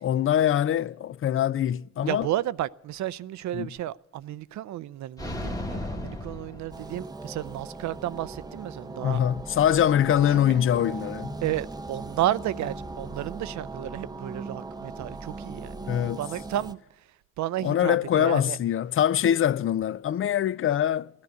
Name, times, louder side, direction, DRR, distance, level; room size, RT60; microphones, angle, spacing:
voice 1, 0.0-2.3 3.5-3.7 9.0-11.3 15.9-16.2 17.6-21.1, left 10 dB, 45° left, 0.4 m, -23 dB
voice 2, 2.0-9.2 10.1-10.6 11.4-16.8 17.4-18.6, right 13 dB, 70° right, 0.5 m, -32 dB
sound 1, 5.2-7.4, left 1 dB, 10° left, 1.4 m, -35 dB
sound 2, 6.7-16.7, right 3 dB, 15° right, 0.7 m, -39 dB
14.5 x 10.5 x 8.2 m
cardioid pair, 90°, 30 cm